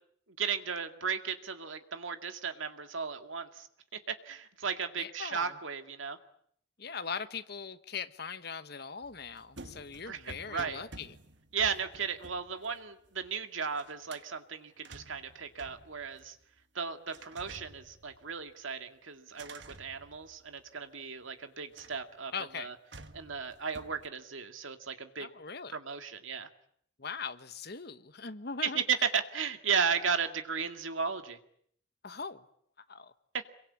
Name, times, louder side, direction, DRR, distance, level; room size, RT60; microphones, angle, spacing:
voice 1, 0.4-3.7 4.1-6.2 10.1-10.8 11.5-16.4 16.7-22.7 23.1-25.3 25.7-26.5 28.6-31.4, right 6 dB, 75° right, 2.2 m, -35 dB
voice 2, 5.0-5.6 6.8-11.2 22.3-22.7 25.2-25.8 27.0-28.8 32.0-32.4 32.9-33.1, left 5 dB, 50° left, 1.2 m, -40 dB
sound 1, 9.0-13.4 13.7-14.3 14.7-16.6 17.1-18.6 19.3-20.8 21.7-22.2 22.9-24.1, right 2 dB, 60° right, 1.6 m, -52 dB
26.5 x 23.0 x 8.7 m
head